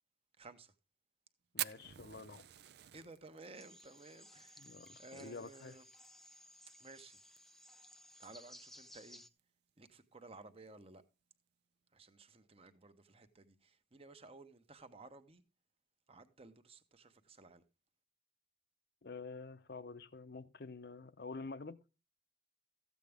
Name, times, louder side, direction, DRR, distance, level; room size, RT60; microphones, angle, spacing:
voice 1, 0.4-0.7 2.9-5.9 6.8-7.2 8.2-9.2 9.8-11.0 11.9-15.4 16.1-17.6, right 3 dB, 35° right, 1.0 m, -56 dB
voice 2, 1.5-2.5 4.6-5.8 19.0-21.8, left 3 dB, 60° left, 0.7 m, -48 dB
Fire, 1.6-6.1 6.3-6.4 6.7-6.8 7.2-7.6 8.1-8.2 9.3-9.4, right 13 dB, 65° right, 0.4 m, -45 dB
sound 1, 3.5-9.3, left 1 dB, ahead, 0.5 m, -58 dB
14.0 x 8.4 x 3.5 m
head